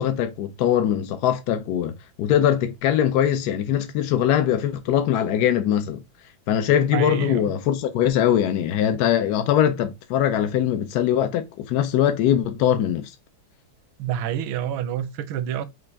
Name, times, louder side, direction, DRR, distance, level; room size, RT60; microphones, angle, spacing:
voice 1, 0.0-6.0 6.5-13.1, left 10 dB, 75° left, 0.9 m, -22 dB
voice 2, 6.9-7.5 14.0-15.7, right 10 dB, 80° right, 1.4 m, -28 dB
5.8 x 2.4 x 3.4 m
omnidirectional pair, 2.2 m